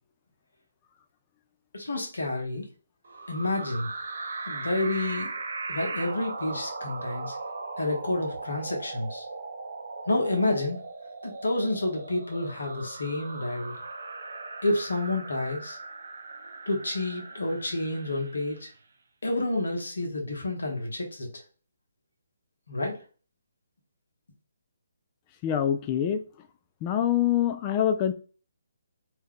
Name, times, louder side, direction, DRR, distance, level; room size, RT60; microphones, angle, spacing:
voice 1, 1.7-2.7 3.3-3.9 4.5-5.4 5.7-7.4 7.8-9.2 10.1-10.8 11.2-13.8 14.6-15.8 16.7-18.7 19.2-21.3 22.7-23.0, left 2 dB, 80° left, 1.1 m, -29 dB
sound 1, 3.0-18.7, right 3 dB, 70° right, 0.5 m, -38 dB
voice 2, 25.4-26.2 26.8-28.1, left 10 dB, 25° left, 0.4 m, -25 dB
2.8 x 2.2 x 3.5 m
figure-of-eight pair, 145°, 0 cm